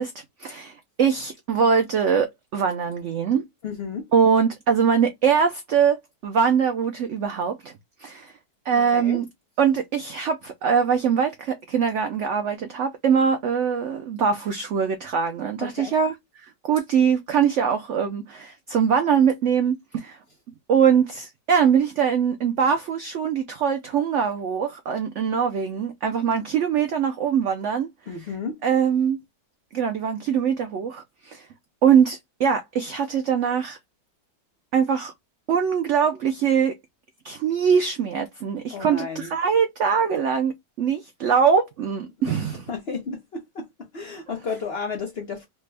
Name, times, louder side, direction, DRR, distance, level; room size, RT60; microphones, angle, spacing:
voice 1, 0.0-3.4 4.1-6.0 6.2-7.7 8.0-8.3 8.7-9.2 9.6-20.2 20.7-27.9 28.6-29.2 29.7-31.5 31.8-33.8 34.7-35.1 35.5-36.7 37.2-42.6, right 7 dB, 80° right, 0.6 m, -22 dB
voice 2, 3.6-4.1 8.7-9.2 15.6-15.9 28.1-28.6 38.7-39.3 42.3-45.5, left 4 dB, 55° left, 0.7 m, -33 dB
3.3 x 2.1 x 3.2 m
omnidirectional pair, 1.8 m